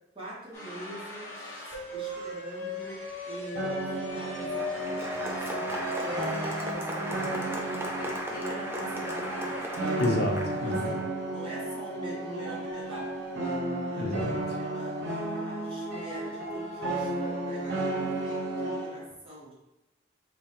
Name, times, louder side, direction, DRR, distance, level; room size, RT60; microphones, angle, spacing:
voice 1, 0.1-6.4 6.7-9.7 10.6-13.2 13.8-14.1 14.6-19.5, equal, 30° right, -6 dB, 1.3 m, -44 dB
sound 1, 0.5-6.7, left 2 dB, 15° left, 1.1 m, -37 dB
sound 2, 3.6-19.0, right 2 dB, 60° right, 1.1 m, -33 dB
Applause, 4.1-11.0, equal, 10° right, 0.5 m, -37 dB
voice 2, 10.0-11.0 14.0-14.6, left 2 dB, 55° left, 2 dB, 0.6 m, -30 dB
4.9 x 2.7 x 2.9 m, 0.96 s
head